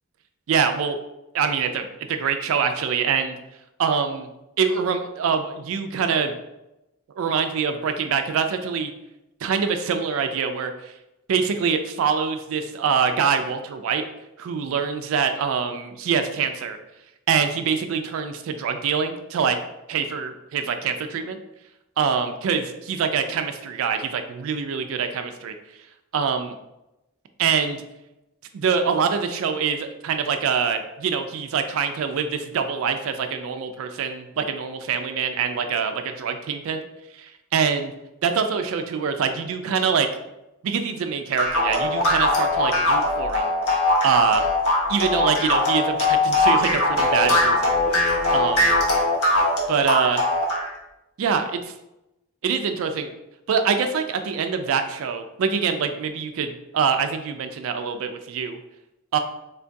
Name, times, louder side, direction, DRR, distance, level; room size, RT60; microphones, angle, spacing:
voice 1, 0.5-1.0 1.3-3.3 3.8-4.3 4.6-6.3 7.2-8.9 9.4-10.9 11.3-14.0 14.4-16.8 17.3-19.6 19.9-21.4 22.0-25.5 26.1-26.5 27.4-27.8 28.5-36.8 37.2-37.9 38.2-40.1 40.6-43.5 44.0-44.5 44.9-48.1 48.3-48.7 49.7-50.2 51.2-51.7 52.4-53.1 53.5-58.6 59.1-59.2, right 6 dB, 65° right, 7 dB, 0.3 m, -24 dB
sound 1, 41.4-50.7, left 2 dB, 75° left, 0.7 m, -21 dB
3.7 x 2.3 x 2.6 m, 0.93 s
head